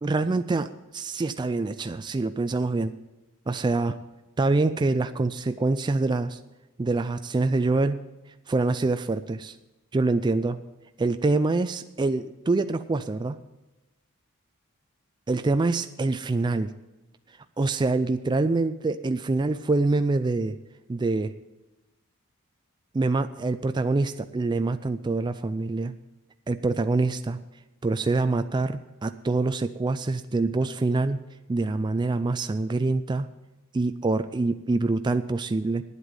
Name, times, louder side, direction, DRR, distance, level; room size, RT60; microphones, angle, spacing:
voice 1, 0.0-2.9 3.5-4.0 4.4-6.4 6.8-8.0 8.5-9.6 9.9-10.6 11.0-13.4 15.3-16.7 17.6-20.6 20.9-21.3 22.9-25.9 26.5-27.4 27.8-31.2 31.5-33.3 33.7-35.8, right 3 dB, 20° right, 10 dB, 0.3 m, -25 dB
9.7 x 8.2 x 8.9 m, 1.1 s
head